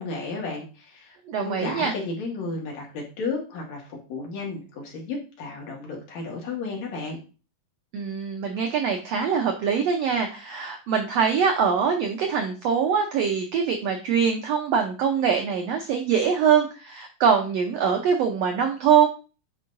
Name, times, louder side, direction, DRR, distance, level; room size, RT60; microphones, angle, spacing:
voice 1, 0.0-7.2, left 3 dB, 60° left, -1 dB, 2.6 m, -33 dB
voice 2, 1.3-1.9 7.9-19.1, right 7 dB, 85° right, 4 dB, 1.4 m, -23 dB
9.7 x 4.6 x 2.6 m, 0.33 s
omnidirectional pair, 3.8 m